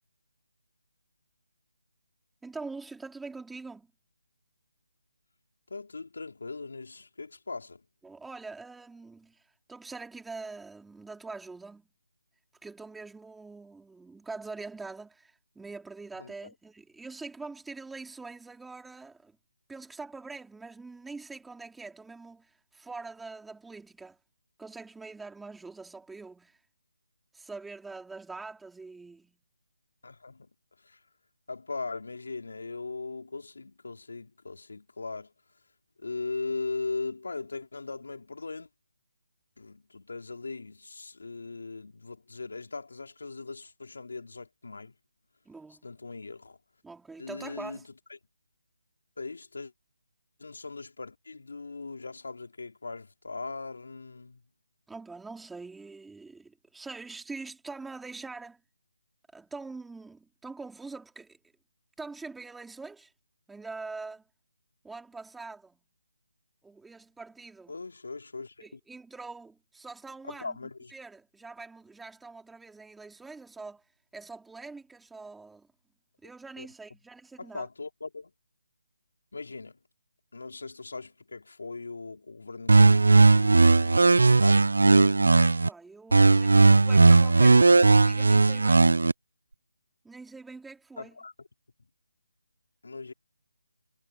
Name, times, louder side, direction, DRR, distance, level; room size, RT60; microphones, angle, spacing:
voice 1, 2.4-3.9 8.0-11.9 12.6-19.4 19.7-24.2 24.6-26.6 27.3-29.4 45.5-45.9 46.8-47.9 54.9-58.6 59.3-61.4 62.0-63.1 63.5-64.3 64.8-65.8 66.6-67.8 68.6-70.6 70.9-73.8 74.1-75.7 76.2-77.7 85.6-88.9 90.0-91.1, right 3 dB, 5° right, 4.0 m, -44 dB
voice 2, 5.7-7.8 16.2-16.5 30.0-30.5 30.8-31.0 31.5-35.3 36.0-38.7 39.6-44.9 45.8-46.6 47.2-47.8 49.2-49.7 50.4-54.4 67.7-68.8 70.2-70.9 76.6-76.7 77.4-78.3 79.3-79.8 80.3-84.7 91.0-91.5 91.8-91.9 92.8-93.1, left 3 dB, 75° left, 4.2 m, -39 dB
sound 1, 82.7-85.7 86.1-89.1, right 3 dB, 80° right, 0.4 m, -18 dB
hypercardioid pair, 175°, 0 cm